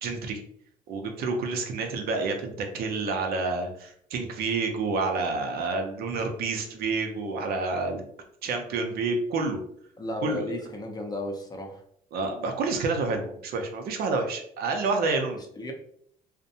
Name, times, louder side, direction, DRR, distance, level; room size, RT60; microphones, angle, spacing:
voice 1, 0.0-0.4 0.9-8.0 8.4-9.6 10.2-10.5 12.1-15.4, right 3 dB, 65° right, 4 dB, 0.5 m, -29 dB
voice 2, 10.0-11.8 15.6-15.7, left 1 dB, 25° left, 3 dB, 0.5 m, -34 dB
2.6 x 2.1 x 2.6 m, 0.66 s
cardioid pair, 110°, 17 cm